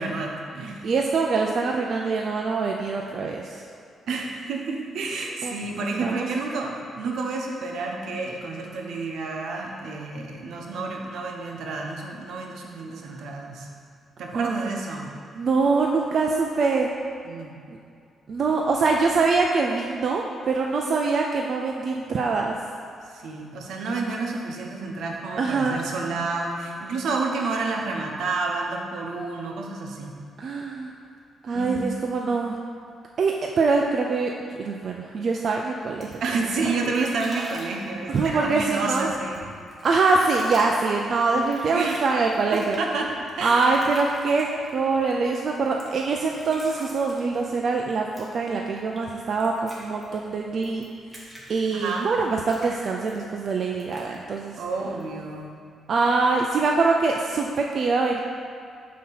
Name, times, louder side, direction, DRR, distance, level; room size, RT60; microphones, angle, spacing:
voice 1, 0.0-0.9 4.1-13.7 14.2-15.1 17.2-17.5 23.1-30.1 31.5-31.8 32.2-32.3 36.2-39.4 41.7-42.0 42.5-43.7 51.7-52.1 54.6-55.5, right 3 dB, 75° right, 0 dB, 0.8 m, -30 dB
voice 2, 0.8-3.6 5.4-6.3 13.1-13.2 14.3-14.8 15.3-16.9 18.3-22.6 25.4-25.9 30.4-30.9 31.4-32.6 33.2-34.3 34.6-36.2 38.1-39.1 39.8-42.8 43.4-44.5 44.7-50.8 51.5-54.6 55.9-58.2, right 4 dB, 50° right, 0 dB, 0.4 m, -24 dB
sound 1, 35.8-55.4, equal, 15° right, 1.4 m, -44 dB
7.3 x 2.9 x 5.6 m, 2.3 s
cardioid pair, 110°, 0 cm